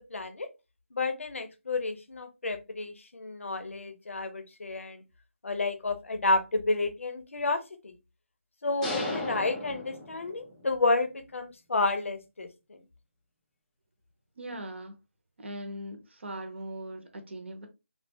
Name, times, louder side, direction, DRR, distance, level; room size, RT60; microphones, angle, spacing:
voice 1, 0.1-0.5 0.9-5.0 5.4-7.9 8.6-12.8, left 2 dB, 75° left, 0.7 m, -31 dB
sound 1, 8.8-10.6, left 2 dB, 5° left, 0.3 m, -34 dB
voice 2, 14.4-14.9 15.4-17.7, right 1 dB, 60° right, 0.8 m, -40 dB
3.4 x 2.3 x 2.6 m
figure-of-eight pair, 165°, 7 cm